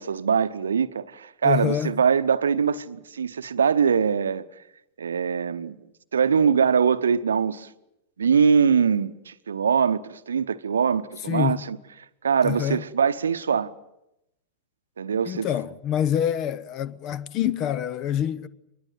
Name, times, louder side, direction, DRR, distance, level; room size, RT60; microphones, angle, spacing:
voice 1, 0.0-4.4 5.0-5.8 6.1-7.7 8.2-11.8 12.2-13.7 15.0-15.5, right 6 dB, 70° right, 0.8 m, -22 dB
voice 2, 1.4-1.9 11.3-11.6 12.4-12.8 15.3-18.5, left 10 dB, 35° left, 0.8 m, -26 dB
23.5 x 20.5 x 8.0 m
figure-of-eight pair, 90°, 0 cm